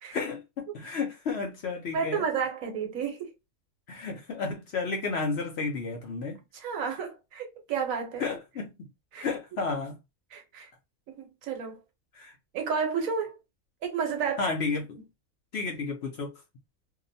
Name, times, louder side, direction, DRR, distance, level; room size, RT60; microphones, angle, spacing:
voice 1, 0.1-2.2 3.9-6.4 8.2-8.9 9.2-10.0 12.1-12.3 14.4-15.0 15.5-16.3, left 4 dB, 60° left, 0.7 m, -32 dB
voice 2, 1.9-3.3 6.5-8.2 9.1-9.3 9.5-9.6 10.3-10.7 11.1-11.8 12.5-13.4 13.8-14.5, right 6 dB, 75° right, 1.1 m, -31 dB
2.8 x 2.0 x 2.6 m
omnidirectional pair, 1.5 m